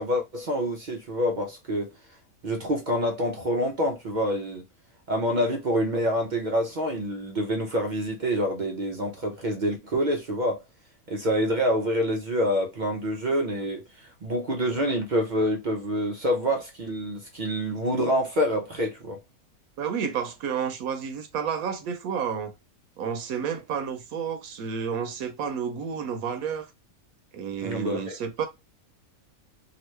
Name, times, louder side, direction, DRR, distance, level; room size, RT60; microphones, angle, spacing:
voice 1, 0.0-1.9 2.4-4.6 5.1-10.6 11.1-19.2 27.6-28.2, equal, 60° right, 0.4 m, -27 dB
voice 2, 19.8-22.5 23.0-26.7 27.3-28.5, right 7 dB, 80° right, 1.0 m, -30 dB
2.9 x 2.4 x 3.1 m
omnidirectional pair, 1.5 m